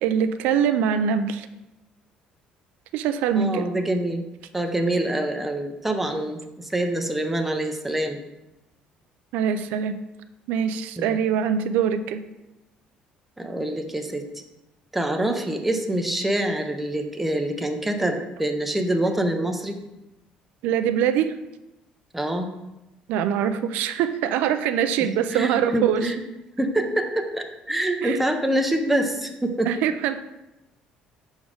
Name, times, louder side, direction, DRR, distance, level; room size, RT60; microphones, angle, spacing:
voice 1, 0.0-1.5 2.9-3.7 9.3-10.0 10.5-12.2 20.6-21.4 23.1-26.1 28.0-28.2 29.7-30.2, right 8 dB, 85° right, 10 dB, 0.4 m, -23 dB
voice 2, 3.3-4.2 4.5-8.2 11.0-11.2 13.4-14.4 14.9-19.8 22.1-22.5 25.3-26.2 26.6-29.7, right 1 dB, 5° right, 4 dB, 0.6 m, -25 dB
6.0 x 3.9 x 5.0 m, 0.96 s
cardioid pair, 160°, 3 cm